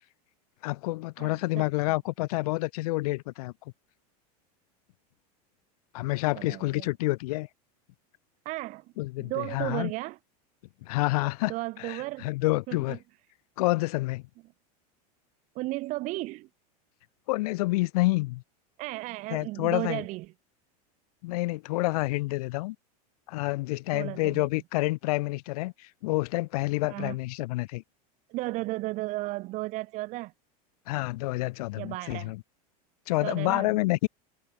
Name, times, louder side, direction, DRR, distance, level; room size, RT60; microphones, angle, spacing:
voice 1, 0.6-3.5 5.9-7.5 9.0-9.9 10.8-11.5 11.8-13.0 13.6-14.2 17.3-18.4 19.3-20.0 21.2-22.8 23.3-27.8 30.9-32.4 33.1-34.1, left 21 dB, 70° left, 0.7 m, -28 dB
voice 2, 1.2-1.7 6.0-6.9 8.4-8.9 9.2-10.2 11.5-12.3 12.7-13.0 15.5-16.5 18.8-20.3 23.9-24.5 26.9-27.1 28.3-30.3 31.8-32.3 33.2-33.7, right 20 dB, 40° right, 0.7 m, -34 dB
supercardioid pair, 150°, 20 cm